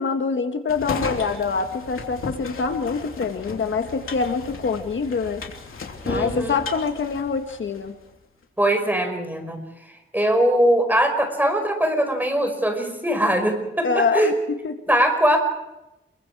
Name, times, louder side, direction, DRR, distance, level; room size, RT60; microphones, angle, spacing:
voice 1, 0.0-5.4 6.1-7.9 13.8-14.3 14.6-14.7, left 5 dB, 70° left, 6 dB, 1.5 m, -25 dB
sound 1, 0.7-7.9, left 4 dB, 85° left, 3.1 m, -34 dB
voice 2, 6.0-6.5 8.6-14.3 14.9-15.4, right 1 dB, 10° right, 5 dB, 5.4 m, -21 dB
28.0 x 23.0 x 4.8 m, 0.93 s
wide cardioid pair, 125°, 21 cm